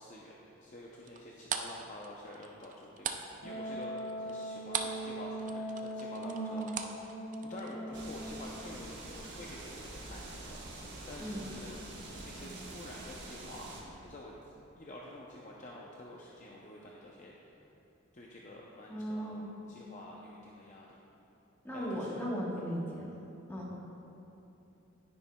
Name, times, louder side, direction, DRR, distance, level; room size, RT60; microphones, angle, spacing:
voice 1, 0.0-14.3 14.7-17.5 18.1-19.4 19.7-21.0 21.7-22.3 22.6-22.7, left 1 dB, 35° left, -3 dB, 0.5 m, -49 dB
sound 1, 1.1-5.1 5.3-7.7, right 7 dB, 35° right, 0.4 m, -39 dB
Wind instrument woodwind instrument, 3.4-8.9, right 1 dB, 60° left, 1.1 m, -41 dB
voice 2, 6.2-6.8 11.2-11.4 18.9-19.5 21.6-23.1 23.5-23.7, equal, 10° left, -5 dB, 1.2 m, -37 dB
sound 2, 7.9-13.8, right 2 dB, 55° right, 1.2 m, -46 dB
9.8 x 9.8 x 2.2 m, 2.9 s
head